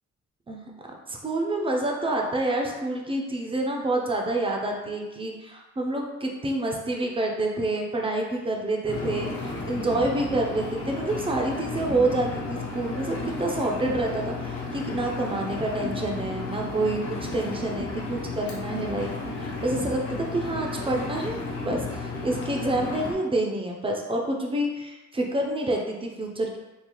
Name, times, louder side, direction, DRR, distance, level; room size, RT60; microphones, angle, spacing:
voice 1, 0.5-26.6, right 2 dB, 20° right, 0 dB, 0.4 m, -28 dB
Engine, 8.8-23.1, left 3 dB, 50° left, 0.6 m, -33 dB
3.8 x 2.4 x 2.9 m, 1.1 s
wide cardioid pair, 165°, 30 cm